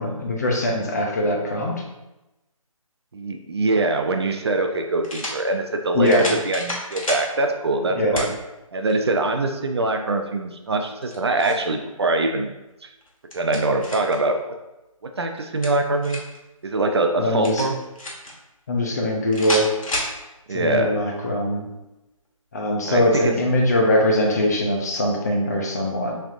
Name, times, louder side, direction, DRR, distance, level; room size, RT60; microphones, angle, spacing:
voice 1, 0.0-1.8 5.9-6.4 7.9-8.3 17.2-17.6 18.7-19.7 20.5-21.7 22.5-26.2, left 1 dB, 30° left, 1 dB, 0.6 m, -22 dB
voice 2, 3.1-8.3 8.7-12.5 13.3-14.4 15.2-16.2 16.6-17.8 20.5-21.0 22.9-23.3, right 2 dB, 45° right, 4 dB, 0.5 m, -23 dB
sound 1, 3.8-3.9 5.0-5.4 6.0-7.3 8.1-8.3 8.9-9.0 10.9-11.7 13.0-14.2 15.4-16.4 17.4-18.3 19.3-20.1, left 1 dB, 70° left, 1.4 m, -30 dB
6.0 x 3.4 x 2.5 m, 0.99 s
figure-of-eight pair, 160°, 18 cm